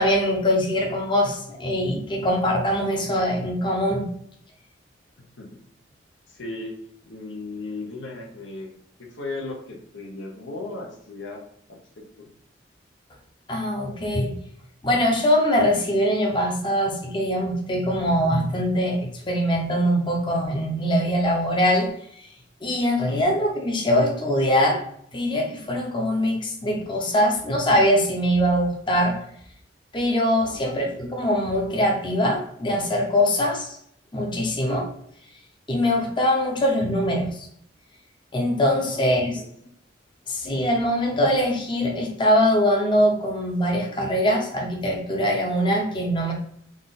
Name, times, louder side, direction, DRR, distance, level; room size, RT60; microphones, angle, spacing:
voice 1, 0.0-4.1 13.5-14.4 14.8-21.9 22.6-24.8 25.1-29.2 29.9-33.8 34.1-34.9 35.7-37.5 38.3-39.4 40.3-46.3, equal, 25° left, -1 dB, 0.7 m, -22 dB
voice 2, 5.2-5.6 6.3-8.7 9.0-11.4 11.7-12.3 19.2-19.3 23.1-23.2 30.4-30.6 38.7-39.5, left 2 dB, 75° left, 1 dB, 0.8 m, -37 dB
3.7 x 2.5 x 3.9 m, 0.67 s
head